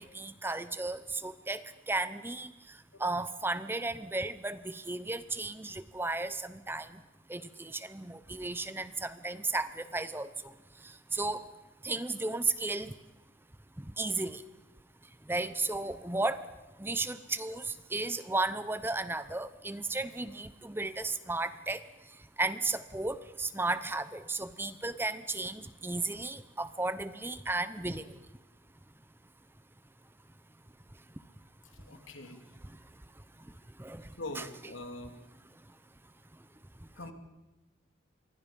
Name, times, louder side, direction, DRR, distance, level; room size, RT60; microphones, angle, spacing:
voice 1, 0.0-2.5 3.0-6.9 7.3-10.3 11.1-11.4 11.8-12.9 14.0-14.4 15.3-16.4 16.8-21.8 22.4-28.1 33.8-34.1 34.4-34.5, right 2 dB, 10° right, 13 dB, 0.7 m, -34 dB
voice 2, 31.6-32.4 34.2-35.2 37.0-37.1, left 2 dB, 80° left, 5 dB, 3.2 m, -43 dB
27.5 x 23.5 x 5.4 m, 1.0 s
head